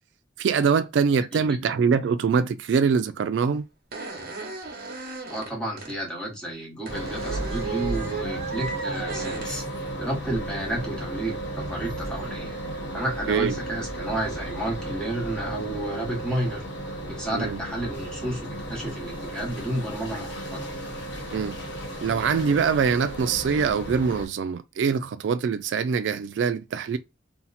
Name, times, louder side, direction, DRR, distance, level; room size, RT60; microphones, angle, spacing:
voice 1, 0.4-3.6 13.3-13.5 17.3-17.6 21.3-21.6 22.0-27.0, right 6 dB, 75° right, 0.3 m, -23 dB
voice 2, 1.1-1.7 5.3-9.6 10.0-12.6 12.9-16.7 17.1-20.7, right 1 dB, 5° left, 1.1 m, -31 dB
sound 1, 3.5-3.6 3.9-6.0 6.9-9.5 10.2-10.5 13.3-13.4 14.3-14.6 15.6-15.9, right 4 dB, 50° right, 0.8 m, -36 dB
sound 2, 6.9-24.3, right 1 dB, 75° left, 1.1 m, -34 dB
2.8 x 2.0 x 4.0 m
head